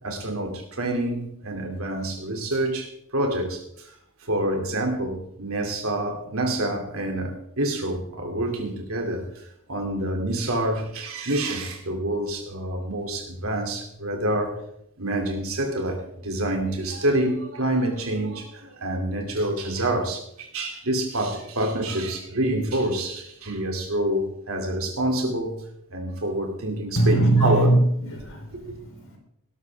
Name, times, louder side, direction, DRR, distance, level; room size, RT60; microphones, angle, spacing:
voice 1, 0.0-3.9 4.2-14.6 15.0-25.6 25.9-27.7 28.5-28.7, right 1 dB, 65° right, 3.1 m, -27 dB
voice 2, 27.0-29.2, right 2 dB, 60° left, 3.8 m, -21 dB
18.5 x 12.0 x 3.7 m
head